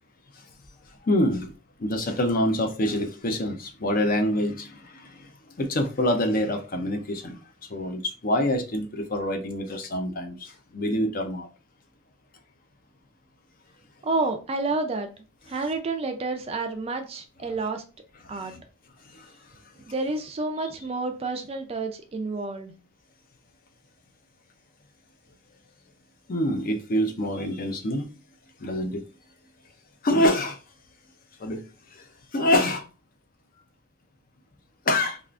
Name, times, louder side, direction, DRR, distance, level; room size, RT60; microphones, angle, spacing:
voice 1, 1.0-1.5 1.8-5.3 5.6-7.4 7.7-11.5 18.2-18.6 19.0-19.3 26.3-28.1 28.6-29.0 30.0-30.6 31.4-32.9 34.9-35.2, left 1 dB, 40° left, 0.5 m, -26 dB
voice 2, 14.0-17.8 18.3-18.5 19.9-22.7, right 3 dB, 30° right, 0.4 m, -29 dB
3.5 x 2.4 x 2.4 m
head